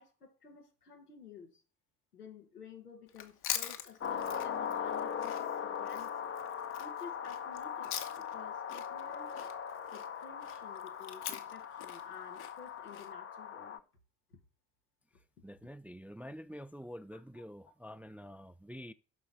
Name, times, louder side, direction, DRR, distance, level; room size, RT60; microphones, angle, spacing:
voice 1, 0.0-1.6 2.1-6.3 6.8-9.4 9.9-13.8, left 6 dB, 85° left, 1.3 m, -52 dB
Chewing mastication, 3.1-8.4 8.7-13.1, left 10 dB, 60° left, 1.3 m, -43 dB
sound 1, 4.0-13.8, left 8 dB, 30° left, 0.8 m, -40 dB
voice 2, 15.4-18.9, equal, 5° right, 0.3 m, -47 dB
7.8 x 5.9 x 6.7 m
figure-of-eight pair, 40°, 45 cm